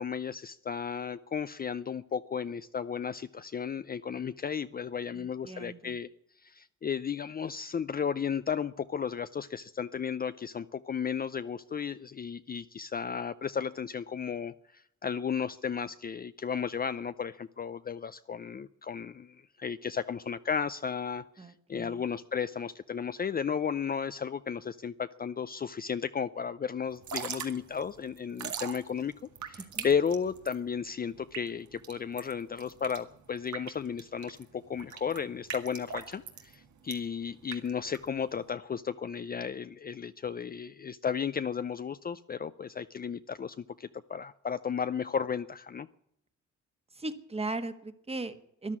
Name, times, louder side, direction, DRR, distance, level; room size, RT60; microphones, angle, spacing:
voice 1, 0.0-6.1 6.4-29.1 29.4-45.9, left 7 dB, 30° left, 12 dB, 0.5 m, -34 dB
voice 2, 5.1-6.0 21.4-22.1 28.4-28.5 29.6-29.9 46.9-48.8, right 2 dB, 20° right, 10 dB, 1.5 m, -38 dB
Drip / Trickle dribble, 26.9-38.5, right 8 dB, 80° right, 2.0 m, -42 dB
13.5 x 11.0 x 9.6 m, 0.75 s
cardioid pair, 115°, 29 cm